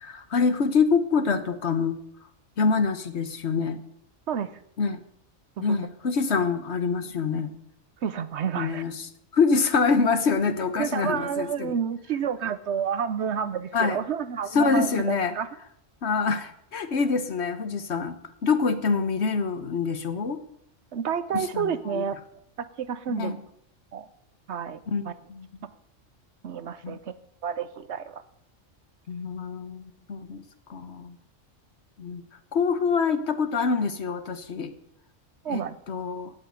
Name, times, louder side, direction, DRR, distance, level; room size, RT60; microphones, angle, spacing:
voice 1, 0.0-2.0 2.6-3.8 4.8-5.0 5.6-7.5 8.5-11.7 13.7-14.0 14.5-15.3 16.0-20.4 21.3-22.0 23.1-23.4 24.9-25.5 26.8-27.0 29.1-30.4 30.7-31.1 32.0-32.2 32.5-34.7 35.5-36.3, left 5 dB, 60° left, 10 dB, 1.3 m, -26 dB
voice 2, 8.0-8.8 10.8-15.5 20.9-22.2 22.8-23.4 23.9-24.1 24.5-24.8 25.1-25.2 26.4-27.1 27.4-28.2 35.4-35.8, right 7 dB, 65° right, 14 dB, 1.0 m, -29 dB
16.5 x 5.8 x 9.1 m, 0.75 s
omnidirectional pair, 1.3 m